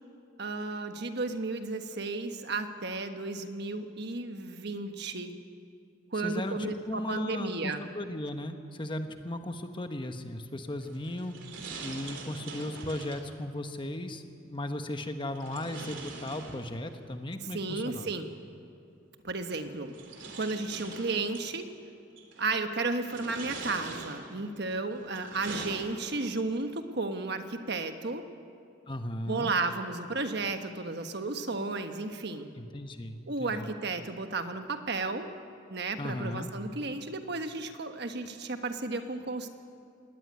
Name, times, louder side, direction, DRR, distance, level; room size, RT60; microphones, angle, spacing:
voice 1, 0.4-5.3 6.1-7.8 17.5-18.3 19.2-19.9 20.3-21.7 22.4-28.2 29.3-32.5 33.3-35.3 35.7-39.5, right 3 dB, 55° right, 7 dB, 1.4 m, -33 dB
voice 2, 6.2-6.6 6.9-11.3 11.8-18.1 28.9-29.5 32.6-33.7 36.0-36.5, left 1 dB, 25° left, 7 dB, 1.1 m, -36 dB
sound 1, 10.8-13.3 15.3-17.0 18.4-18.5 19.4-21.5 22.2-22.5 23.0-24.5 25.0-26.4, right 3 dB, 70° right, 3.2 m, -43 dB
19.5 x 18.0 x 9.5 m, 2.5 s
head